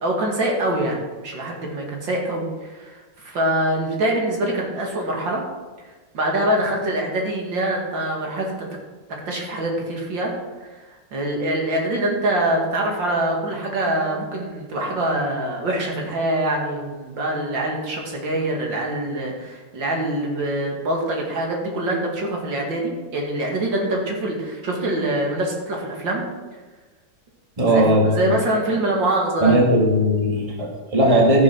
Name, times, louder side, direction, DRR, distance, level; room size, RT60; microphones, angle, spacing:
voice 1, 0.0-5.4 6.1-8.6 9.3-10.3 10.6-10.8 11.1-26.2 27.7-29.6, right 1 dB, 70° right, 0 dB, 2.9 m, -24 dB
voice 2, 27.6-28.4 29.4-31.4, right 1 dB, 20° right, 0 dB, 1.8 m, -17 dB
13.5 x 6.9 x 6.2 m, 1.3 s
omnidirectional pair, 2.1 m